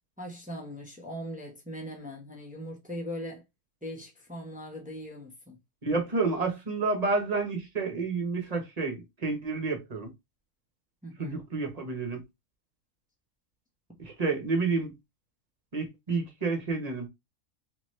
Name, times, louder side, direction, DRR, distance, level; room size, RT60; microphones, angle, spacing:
voice 1, 0.2-3.4 3.8-5.6 11.0-11.4, equal, 5° right, 1.0 m, -40 dB
voice 2, 5.8-10.1 11.2-12.2 14.0-14.9 15.7-17.1, right 3 dB, 30° right, 1.0 m, -30 dB
3.6 x 2.9 x 3.2 m
omnidirectional pair, 1.4 m